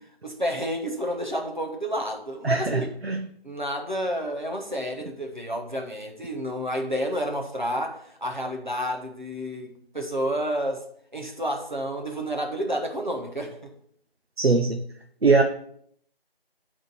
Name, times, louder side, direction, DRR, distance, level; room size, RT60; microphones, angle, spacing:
voice 1, 0.2-2.9 3.4-10.8 11.1-13.7 15.3-15.4, equal, 50° right, 2 dB, 1.2 m, -30 dB
voice 2, 2.4-3.2 14.4-14.8 15.2-15.4, right 4 dB, 80° right, 5 dB, 0.8 m, -21 dB
9.4 x 3.7 x 4.8 m, 0.65 s
figure-of-eight pair, 180°, 30 cm